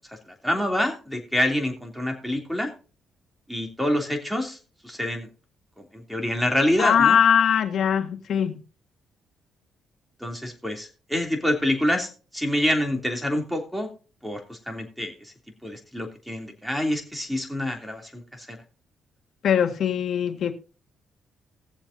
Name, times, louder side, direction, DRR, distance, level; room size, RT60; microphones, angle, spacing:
voice 1, 0.1-2.7 3.5-4.6 4.8-5.3 5.8-7.2 10.2-13.9 14.2-15.3 15.6-18.6, left 1 dB, ahead, 2.9 m, -27 dB
voice 2, 6.8-8.6 19.4-20.5, left 8 dB, 65° left, 1.7 m, -21 dB
20.5 x 7.2 x 2.7 m
cardioid pair, 90°, 0 cm